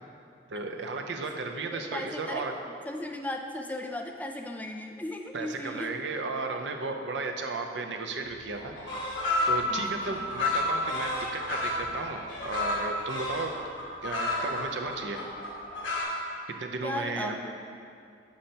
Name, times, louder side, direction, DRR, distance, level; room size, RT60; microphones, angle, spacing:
voice 1, 0.5-2.5 5.3-8.9 9.5-13.5 14.0-15.2 16.6-17.4, right 3 dB, 75° right, 4 dB, 0.6 m, -34 dB
voice 2, 1.7-2.5 2.9-6.0 9.7-10.3 16.8-17.4, left 1 dB, 10° left, 3 dB, 0.3 m, -36 dB
sound 1, 8.3-8.4 8.5-16.0, left 2 dB, 90° left, 1.3 m, -31 dB
8.5 x 5.7 x 2.8 m, 2.3 s
head